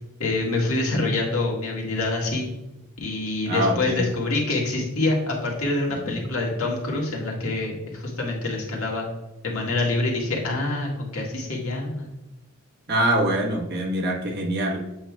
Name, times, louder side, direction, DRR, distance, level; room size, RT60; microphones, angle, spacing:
voice 1, 0.2-2.5 3.0-9.1 9.4-12.1, left 2 dB, 85° left, -2 dB, 1.8 m, -26 dB
voice 2, 3.4-4.0 6.1-6.2 12.9-14.8, right 1 dB, 50° right, -1 dB, 1.3 m, -24 dB
7.9 x 5.5 x 2.3 m, 0.97 s
head